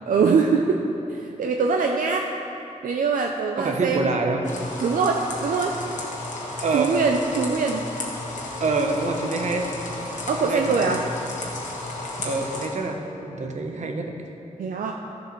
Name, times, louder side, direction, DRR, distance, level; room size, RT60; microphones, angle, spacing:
voice 1, 0.1-0.8 1.1-2.3 2.8-4.1 4.8-5.7 6.7-7.8 10.3-11.1 14.6-14.9, right 5 dB, 80° right, 2 dB, 0.5 m, -23 dB
voice 2, 3.6-4.4 6.6-7.0 8.6-9.7 10.4-11.0 12.2-14.1, right 3 dB, 60° right, 3 dB, 0.9 m, -26 dB
sound 1, 4.4-12.7, left 2 dB, 65° left, 1.5 m, -33 dB
14.0 x 7.3 x 3.2 m, 2.9 s
wide cardioid pair, 145°, 14 cm